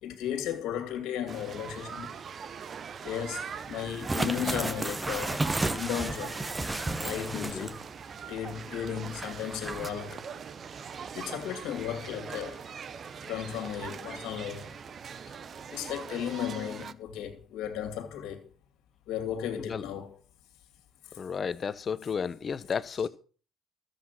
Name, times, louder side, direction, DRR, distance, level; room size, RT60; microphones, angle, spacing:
voice 1, 0.0-2.2 3.0-5.4 5.7-6.4 7.0-7.8 8.3-10.2 11.1-12.6 13.3-14.7 15.7-18.4 19.1-20.1, left 9 dB, 70° left, 2.7 m, -35 dB
sound 1, 1.3-16.9, right 6 dB, 50° right, 0.8 m, -42 dB
sound 2, 3.9-7.9 8.2-8.3 9.1-9.9, right 2 dB, 20° right, 1.2 m, -32 dB
voice 2, 7.3-7.7 19.6-19.8 21.2-23.1, left 6 dB, 45° left, 1.0 m, -33 dB
13.5 x 8.2 x 6.0 m
hypercardioid pair, 60°, 0 cm